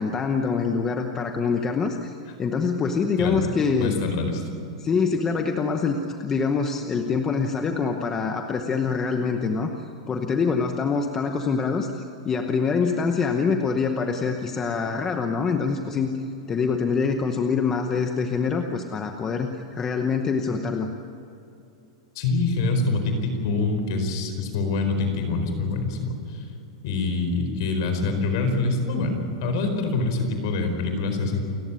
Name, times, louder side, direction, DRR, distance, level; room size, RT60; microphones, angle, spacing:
voice 1, 0.0-3.9 4.8-9.7 10.1-11.9 12.2-16.2 16.5-20.9, left 5 dB, 15° left, 5 dB, 0.9 m, -25 dB
voice 2, 3.8-4.4 22.1-26.4 26.8-31.4, left 3 dB, 45° left, 6 dB, 4.6 m, -25 dB
29.5 x 15.0 x 9.7 m, 2.7 s
supercardioid pair, 180°, 3 cm